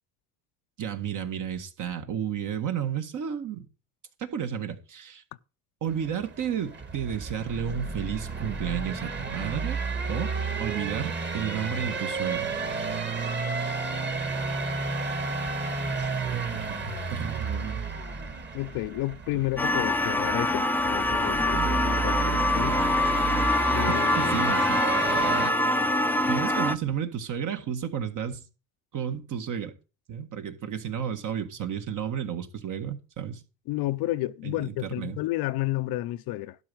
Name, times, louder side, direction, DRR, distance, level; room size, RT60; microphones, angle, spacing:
voice 1, 0.8-3.7 4.2-5.2 5.8-9.8 10.1-10.3 10.6-12.6 16.3-16.4 16.7-17.8 24.2-24.8 25.4-25.5 26.3-28.4 28.9-29.7 30.1-33.4 34.4-35.2, right 8 dB, 50° right, 1.8 m, -32 dB
sound 1, 5.9-25.5, right 4 dB, 25° right, 1.9 m, -32 dB
voice 2, 18.5-22.8 23.7-24.3 33.7-36.6, left 17 dB, 65° left, 0.7 m, -31 dB
sound 2, 19.6-26.8, left 1 dB, 5° left, 0.6 m, -25 dB
12.0 x 4.1 x 7.7 m
supercardioid pair, 100°, 41 cm